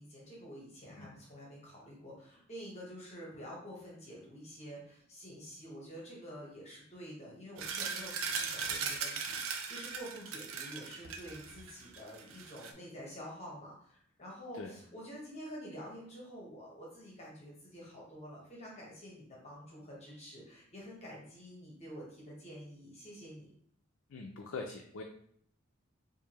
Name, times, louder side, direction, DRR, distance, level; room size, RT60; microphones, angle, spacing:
voice 1, 0.0-23.5, equal, 30° left, -4 dB, 1.0 m, -48 dB
sound 1, 7.6-12.7, right 5 dB, 75° right, 0.5 m, -39 dB
voice 2, 24.1-25.0, left 3 dB, 75° left, 3 dB, 0.4 m, -42 dB
4.5 x 2.6 x 2.9 m, 0.64 s
head